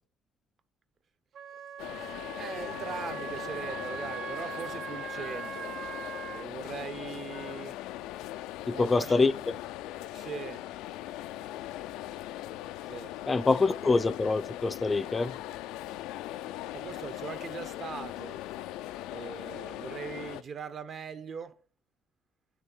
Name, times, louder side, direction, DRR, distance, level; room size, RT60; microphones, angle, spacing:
Wind instrument woodwind instrument, 1.3-6.5, right 8 dB, 70° right, 0.7 m, -40 dB
sound 1, 1.8-20.4, left 14 dB, 90° left, 0.4 m, -40 dB
voice 1, 2.4-5.8 6.3-7.8 8.7-9.2 10.1-10.7 12.9-13.1 16.7-18.4 19.1-21.6, right 6 dB, 50° right, 1.0 m, -41 dB
voice 2, 8.7-9.3 13.3-15.3, left 3 dB, 25° left, 0.4 m, -25 dB
9.8 x 3.7 x 7.2 m
cardioid pair, 100°, 0 cm